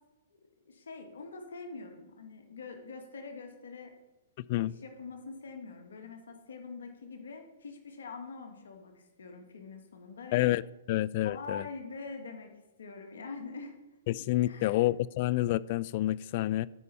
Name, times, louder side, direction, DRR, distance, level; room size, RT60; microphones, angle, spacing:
voice 1, 0.7-3.9 4.6-10.5 11.2-12.5 12.8-13.8 14.4-14.9, left 4 dB, 80° left, 1.7 m, -44 dB
voice 2, 10.3-10.6 10.9-11.7 14.1-16.7, left 16 dB, 45° left, 0.3 m, -28 dB
15.0 x 5.5 x 4.2 m
hypercardioid pair, 135°, 0 cm